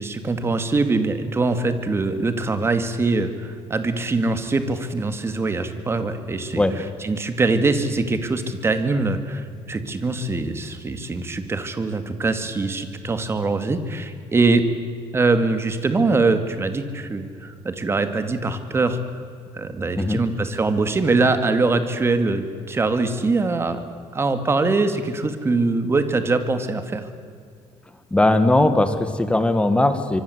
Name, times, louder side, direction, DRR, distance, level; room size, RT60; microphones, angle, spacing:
voice 1, 0.0-6.6 7.0-14.6 15.1-19.2 19.5-23.8 24.1-27.1, right 3 dB, 20° right, 9 dB, 2.3 m, -23 dB
voice 2, 28.1-30.2, left 2 dB, 10° left, 10 dB, 1.7 m, -19 dB
25.5 x 24.0 x 8.1 m, 2.1 s
cardioid pair, 145°, 11 cm